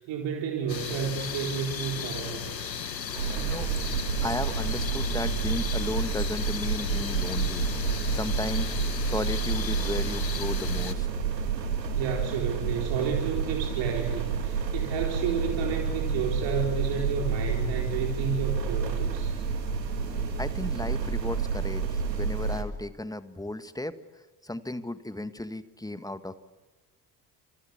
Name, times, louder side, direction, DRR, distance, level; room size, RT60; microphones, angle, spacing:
voice 1, 0.0-2.5 11.9-19.3, right 6 dB, 60° right, 0 dB, 4.4 m, -31 dB
sound 1, 0.7-10.9, left 7 dB, 90° left, 1.2 m, -36 dB
voice 2, 3.0-3.7 4.2-7.7 8.1-8.8 9.0-11.1 20.4-26.4, left 1 dB, 5° left, 12 dB, 1.7 m, -35 dB
sound 2, 3.1-22.6, right 5 dB, 85° right, 2.2 m, -29 dB
28.5 x 27.5 x 7.1 m, 1.1 s
figure-of-eight pair, 50°, 49 cm